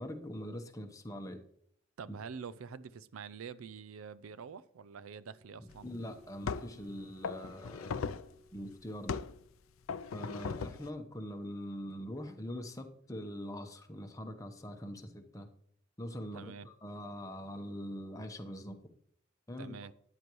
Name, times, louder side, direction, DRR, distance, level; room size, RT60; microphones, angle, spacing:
voice 1, 0.0-1.4 5.6-8.0 8.5-9.2 10.1-15.5 16.0-18.8 19.5-19.7, equal, 15° left, 1.0 m, -43 dB
voice 2, 2.0-5.9 16.3-16.7 19.6-19.9, right 6 dB, 85° right, 0.5 m, -46 dB
Wind instrument woodwind instrument, 5.2-10.2, left 1 dB, 60° right, 3.7 m, -63 dB
peg leg, 5.7-5.8 6.4-6.8 7.2-8.3 9.1-9.4 9.9-10.9, left 5 dB, 80° left, 0.4 m, -38 dB
13.5 x 9.6 x 3.1 m
head